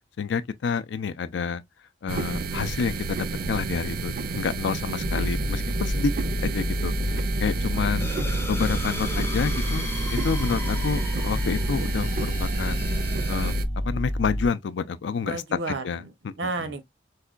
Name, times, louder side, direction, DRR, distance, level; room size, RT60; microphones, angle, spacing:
voice 1, 0.2-1.6 2.0-6.1 6.4-8.1 8.5-9.8 10.1-12.9 13.3-13.5 13.8-15.4 15.7-16.0, left 5 dB, 75° left, 0.4 m, -29 dB
sound 1, 2.1-13.6, right 4 dB, 50° right, 0.4 m, -31 dB
sound 2, 5.0-14.5, equal, 35° left, 0.8 m, -28 dB
voice 2, 7.7-8.5 15.2-16.1 16.4-16.8, right 3 dB, 90° right, 0.8 m, -33 dB
sound 3, 8.0-13.5, left 3 dB, 15° left, 0.5 m, -38 dB
4.6 x 2.2 x 2.3 m
head